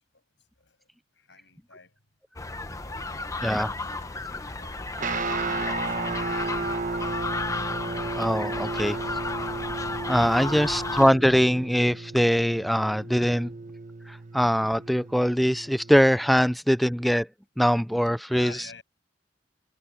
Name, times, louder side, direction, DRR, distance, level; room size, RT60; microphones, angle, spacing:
voice 1, 0.6-2.0 2.8-6.4 18.3-18.8, left 4 dB, 85° left, 7.8 m, -52 dB
sound 1, 2.4-11.1, left 3 dB, 20° left, 0.9 m, -33 dB
sound 2, 2.7-12.1, left 4 dB, 40° left, 7.5 m, -51 dB
voice 2, 3.4-3.7 5.6-5.7 8.1-9.0 10.1-13.5 14.1-17.3 17.6-18.6, equal, ahead, 0.3 m, -22 dB
Guitar, 5.0-16.4, right 3 dB, 45° right, 1.2 m, -34 dB
head